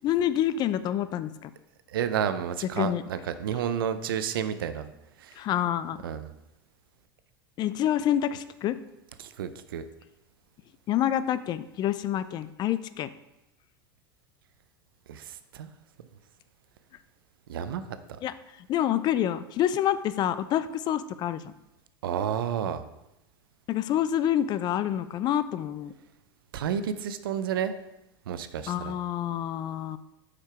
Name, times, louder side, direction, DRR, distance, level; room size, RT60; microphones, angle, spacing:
voice 1, 0.0-1.5 2.8-3.0 5.4-6.0 7.6-8.8 10.9-13.1 18.2-18.3 18.7-21.5 23.7-25.9 28.7-30.0, left 11 dB, 35° left, 14 dB, 0.3 m, -27 dB
voice 2, 1.9-4.9 5.2-5.4 6.0-6.3 9.2-9.9 15.1-15.7 17.5-17.8 18.1-18.2 22.0-22.8 26.5-27.7 28.3-28.9, right 8 dB, 75° right, 12 dB, 0.5 m, -31 dB
4.9 x 4.5 x 4.7 m, 0.91 s
hypercardioid pair, 90°, 12 cm